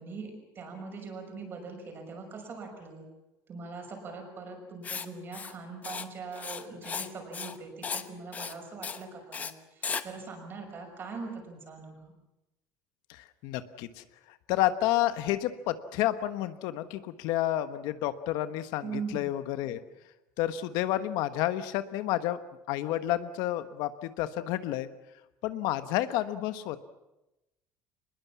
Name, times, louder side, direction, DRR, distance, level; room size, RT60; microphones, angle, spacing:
voice 1, 0.0-3.1 3.5-12.1 18.8-19.3, right 4 dB, 30° right, 3 dB, 6.1 m, -41 dB
Writing, 4.8-5.1 5.3-5.5 5.8-6.1 6.3-7.1 7.3-7.6 7.8-8.1 8.3-8.5 8.8-9.0 9.3-9.5 9.8-10.0, left 6 dB, 20° left, 1.0 m, -35 dB
voice 2, 13.1-19.8 20.4-22.4 22.7-24.9 25.4-26.8, left 13 dB, 70° left, 11 dB, 1.3 m, -30 dB
24.5 x 21.0 x 7.3 m, 0.96 s
cardioid pair, 165°, 7 cm